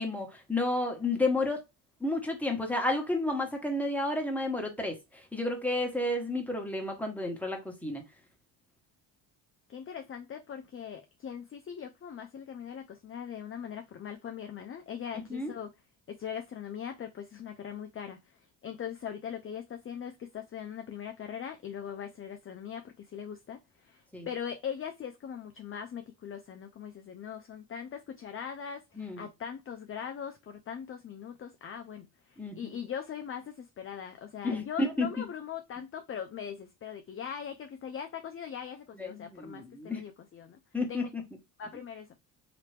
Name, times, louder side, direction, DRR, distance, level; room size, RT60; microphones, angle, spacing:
voice 1, 0.0-1.6 2.0-5.0 5.3-8.0 15.3-15.5 24.1-24.3 29.0-29.3 32.4-32.7 34.4-35.1 39.0-40.0 40.7-41.2, left 2 dB, 5° left, 1.2 m, -31 dB
voice 2, 9.7-15.7 16.1-40.6 40.9-41.1 41.6-42.1, left 8 dB, 30° left, 0.4 m, -41 dB
2.9 x 2.9 x 3.3 m
supercardioid pair, 70°, 49 cm